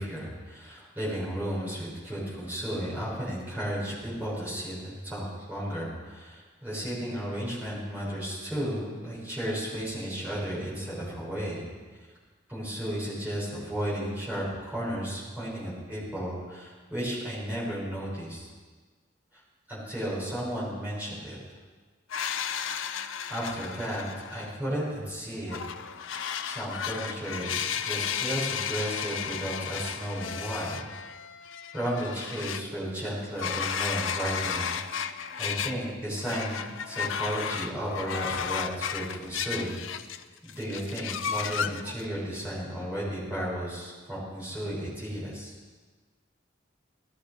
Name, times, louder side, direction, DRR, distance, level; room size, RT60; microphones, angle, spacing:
voice 1, 0.0-11.6 12.5-18.5 19.3-19.4 19.7-21.4 23.3-25.6 26.4-30.9 31.7-39.8 40.4-45.5, equal, 10° right, -8 dB, 6.6 m, -34 dB
sound 1, 22.1-24.6 25.5-32.6 33.2-35.9 36.2-40.2 40.5-42.1, left 7 dB, 85° left, 0.6 m, -33 dB
18.5 x 14.0 x 5.2 m, 1.4 s
head